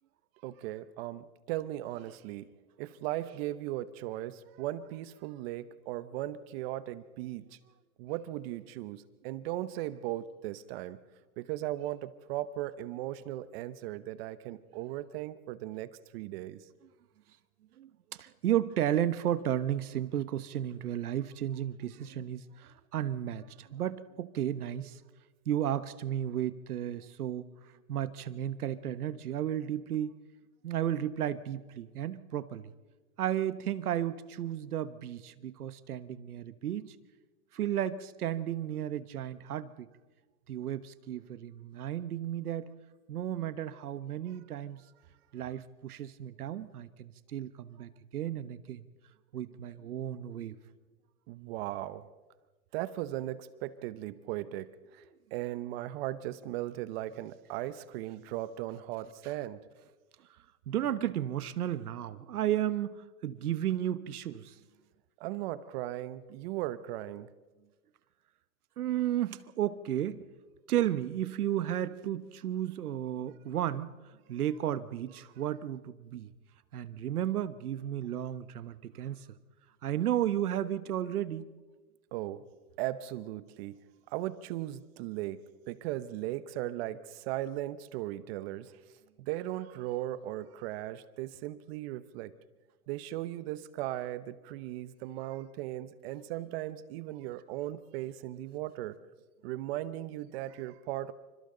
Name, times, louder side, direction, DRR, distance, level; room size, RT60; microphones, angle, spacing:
voice 1, 0.4-2.5 2.8-7.6 8.0-11.0 11.4-16.6 51.3-52.1 52.7-55.0 55.3-59.6 65.2-67.3 82.1-82.4 82.8-83.8 84.1-88.8 89.2-92.3 92.9-99.0 99.4-101.1, right 14 dB, 45° right, 15 dB, 1.0 m, -37 dB
voice 2, 17.8-25.0 25.5-27.5 27.9-30.1 30.6-32.7 33.2-36.9 37.5-39.9 40.5-42.7 43.1-44.8 45.3-48.9 49.3-50.5 60.7-64.6 68.8-70.2 70.7-73.9 74.3-76.3 76.7-79.4 79.8-81.4, right 11 dB, 80° right, 14 dB, 1.2 m, -33 dB
27.5 x 25.5 x 3.9 m, 1.3 s
hypercardioid pair, 135°, 44 cm